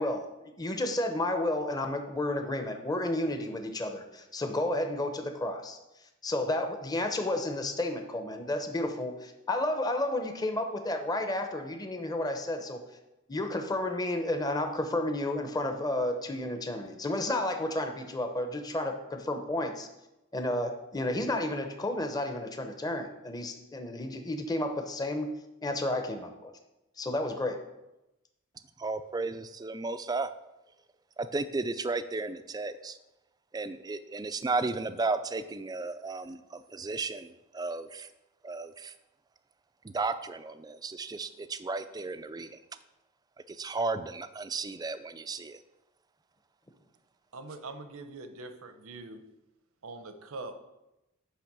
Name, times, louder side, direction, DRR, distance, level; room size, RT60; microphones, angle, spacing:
voice 1, 0.0-5.8 6.2-12.8 13.3-19.9 20.3-25.3 25.6-26.5 27.0-27.6, left 1 dB, 20° left, 5 dB, 0.7 m, -31 dB
voice 2, 28.8-30.3 31.2-33.0 33.5-38.1 38.4-38.9 39.8-42.6 43.5-45.6, right 3 dB, 20° right, 11 dB, 0.3 m, -34 dB
voice 3, 47.3-49.2 49.8-50.6, right 3 dB, 75° right, 8 dB, 0.8 m, -43 dB
9.9 x 3.4 x 6.0 m, 0.94 s
head